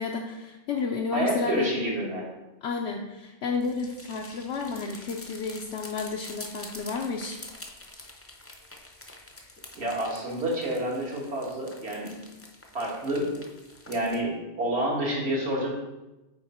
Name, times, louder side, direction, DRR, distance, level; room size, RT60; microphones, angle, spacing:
voice 1, 0.0-1.7 2.6-7.4, left 4 dB, 75° left, 1 dB, 0.9 m, -31 dB
voice 2, 1.1-2.3 9.8-12.1 12.7-13.3 13.9-15.8, right 1 dB, 65° right, -3 dB, 1.8 m, -29 dB
sound 1, 3.5-14.2, left 2 dB, 15° left, 0.5 m, -46 dB
6.4 x 4.6 x 4.2 m, 1.0 s
omnidirectional pair, 1.2 m